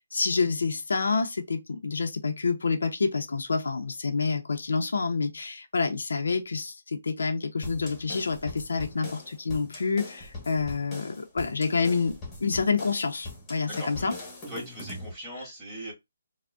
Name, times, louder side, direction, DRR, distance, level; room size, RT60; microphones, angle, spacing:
voice 1, 0.0-14.1, left 4 dB, 75° left, 0.5 m, -28 dB
sound 1, 7.6-15.1, left 2 dB, 15° left, 1.0 m, -41 dB
voice 2, 13.6-14.2 14.5-15.9, right 1 dB, 10° right, 1.6 m, -40 dB
3.6 x 2.0 x 2.3 m
hypercardioid pair, 160°, 0 cm